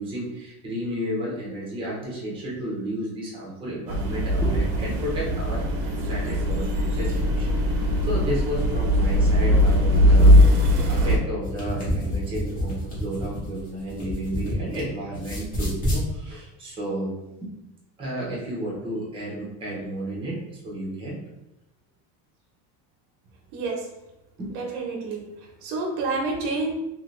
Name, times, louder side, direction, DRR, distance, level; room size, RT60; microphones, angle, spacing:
voice 1, 0.0-17.5 18.0-21.2 24.4-24.6, right 1 dB, 15° right, -5 dB, 0.6 m, -32 dB
sound 1, 3.9-11.2, equal, 65° right, 0.8 m, -20 dB
sound 2, 11.4-14.8 15.1-16.0, equal, 20° left, 0.9 m, -29 dB
voice 2, 23.5-23.9 24.5-26.7, right 3 dB, 90° right, 0 dB, 1.0 m, -29 dB
2.8 x 2.7 x 3.1 m, 0.93 s
cardioid pair, 175°, 40 cm